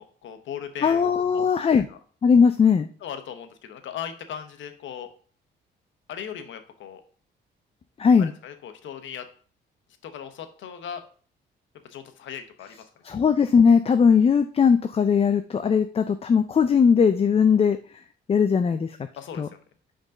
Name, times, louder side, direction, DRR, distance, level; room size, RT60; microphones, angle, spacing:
voice 1, 0.0-1.0 1.9-2.0 3.0-5.1 6.1-7.0 8.2-9.2 10.0-11.0 11.8-12.9 19.2-19.6, left 8 dB, 70° left, 8 dB, 0.9 m, -38 dB
voice 2, 0.8-1.9 2.2-2.9 8.0-8.3 13.0-17.8 18.3-19.0 19.4-19.5, left 6 dB, 30° left, 9 dB, 0.4 m, -19 dB
5.2 x 3.8 x 5.2 m, 0.44 s
cardioid pair, 90°, 20 cm